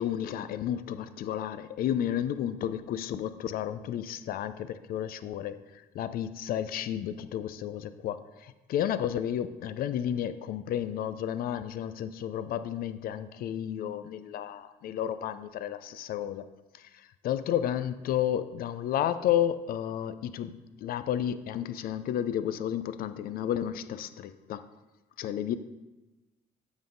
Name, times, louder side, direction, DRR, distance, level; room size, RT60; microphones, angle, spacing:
voice 1, 0.0-16.5 16.7-20.5 20.8-24.6 25.2-25.6, left 10 dB, 60° left, 12 dB, 0.4 m, -32 dB
8.1 x 5.4 x 3.8 m, 1.1 s
cardioid pair, 110°, 17 cm